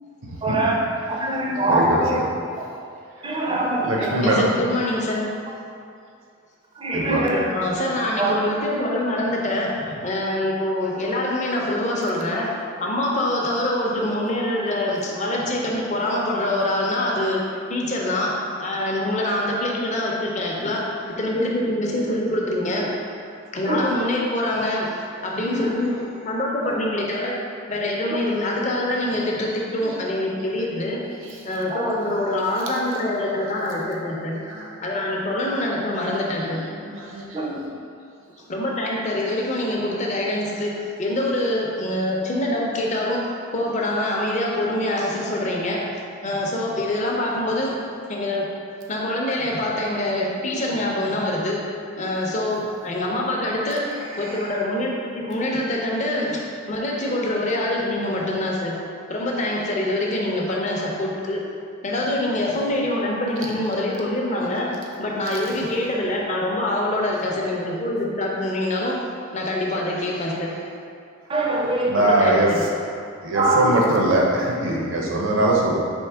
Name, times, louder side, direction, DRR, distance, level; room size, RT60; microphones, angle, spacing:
voice 1, 0.4-0.8 1.1-2.2 3.2-4.3 6.8-7.4 8.2-8.4 21.3-21.5 23.7-24.0 25.4-25.9 31.7-31.9 37.3-37.7 71.3-71.9 73.3-73.7, right 2 dB, 25° right, -1 dB, 0.5 m, -23 dB
voice 2, 1.7-2.0 3.8-4.5 6.9-7.3 30.4-30.8 31.2-31.6 33.0-33.3 33.6-34.1 34.5-34.8 36.9-37.4 54.2-54.4 71.9-72.7 73.2-75.8, right 1 dB, 70° right, -2 dB, 0.7 m, -23 dB
voice 3, 3.9-5.3 7.3-12.5 12.8-17.4 17.7-20.9 21.2-22.9 23.5-24.9 25.2-27.4 27.7-31.1 31.4-34.4 34.8-36.6 38.5-45.8 46.2-47.8 48.1-48.5 48.9-51.6 52.0-53.9 54.2-56.4 56.7-58.8 59.1-61.4 61.8-64.7 65.0-69.0 69.3-70.6 71.9-72.6 75.1-75.2, left 1 dB, 35° left, -2 dB, 0.6 m, -25 dB
4.5 x 3.1 x 3.4 m, 2.4 s
head